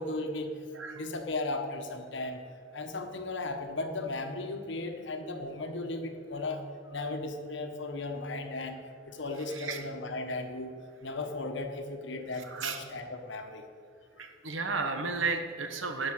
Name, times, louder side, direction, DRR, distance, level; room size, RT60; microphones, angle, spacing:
voice 1, 0.0-0.6 0.9-2.4 2.7-10.7 11.0-13.6 14.2-14.3, left 2 dB, 65° left, 5 dB, 1.3 m, -36 dB
voice 2, 14.2-16.1, right 4 dB, 80° right, 6 dB, 1.4 m, -33 dB
11.0 x 7.3 x 8.9 m, 2.2 s
head